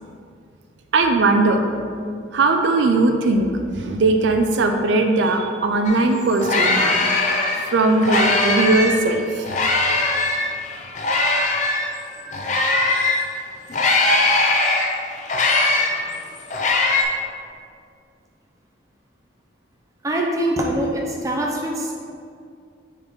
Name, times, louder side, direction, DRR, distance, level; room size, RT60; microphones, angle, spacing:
voice 1, 0.9-1.6 2.3-7.0 7.7-9.5, right 2 dB, 65° right, 5 dB, 0.4 m, -19 dB
sound 1, 5.9-6.0 6.2-9.0 9.4-13.3 13.7-17.0, left 2 dB, 40° left, 0.5 m, -20 dB
voice 2, 20.0-21.9, right 1 dB, 15° right, -1 dB, 0.6 m, -23 dB
5.3 x 4.1 x 4.5 m, 2.3 s
head